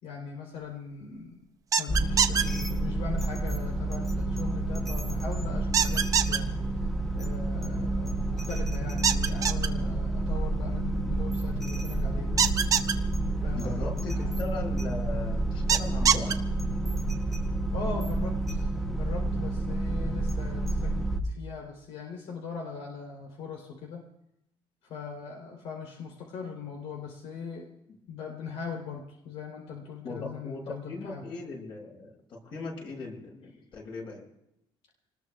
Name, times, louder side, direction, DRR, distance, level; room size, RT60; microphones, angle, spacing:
voice 1, 0.0-1.4 1.8-6.5 7.1-12.4 13.4-14.3 17.7-24.0 24.8-27.7 28.1-31.3, left 5 dB, 90° left, 1 dB, 3.6 m, -40 dB
sound 1, 1.7-2.4 5.7-6.4 9.0-9.7 12.4-12.9 15.7-16.3, right 7 dB, 35° right, 0.7 m, -23 dB
sound 2, 1.9-21.2, right 2 dB, ahead, 0.9 m, -29 dB
voice 2, 13.5-16.4 30.0-34.2, left 3 dB, 55° left, -2 dB, 7.5 m, -38 dB
27.0 x 20.0 x 2.4 m, 0.79 s
cardioid pair, 175°, 10 cm